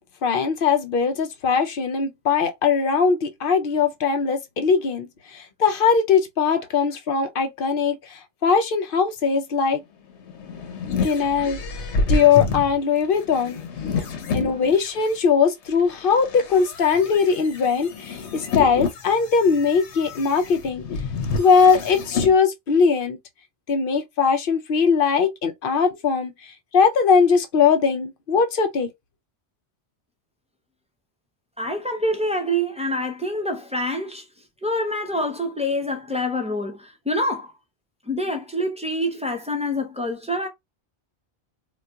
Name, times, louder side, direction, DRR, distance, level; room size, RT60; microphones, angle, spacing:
voice 1, 0.2-5.1 5.3-9.8 11.0-11.6 12.1-13.6 14.3-20.8 21.4-23.2 23.7-26.3 26.7-28.9, left 6 dB, 60° left, 0.7 m, -20 dB
sound 1, 10.1-15.1 15.7-22.4, left 4 dB, 85° left, 1.0 m, -29 dB
voice 2, 14.0-14.6 31.6-34.2 34.6-37.5 38.1-40.5, equal, 10° right, 0.5 m, -26 dB
4.0 x 2.3 x 2.2 m
omnidirectional pair, 1.1 m